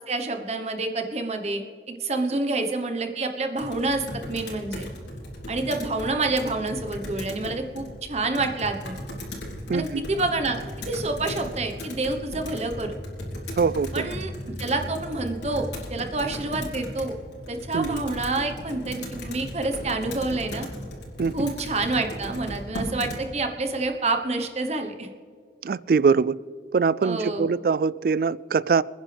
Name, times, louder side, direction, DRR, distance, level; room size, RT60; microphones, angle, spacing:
voice 1, 0.1-4.9 5.5-9.0 9.7-13.0 13.9-14.3 14.6-17.2 17.5-20.7 21.3-25.1 27.0-27.5, right 2 dB, 35° right, 5 dB, 1.1 m, -28 dB
Computer keyboard, 3.6-23.2, equal, 80° left, 3.9 m, -36 dB
voice 2, 9.7-10.0 13.6-14.1 17.7-18.0 21.2-21.5 25.6-26.3 26.7-28.8, right 5 dB, 55° right, 20 dB, 0.3 m, -23 dB
27.5 x 10.0 x 3.4 m, 2.2 s
head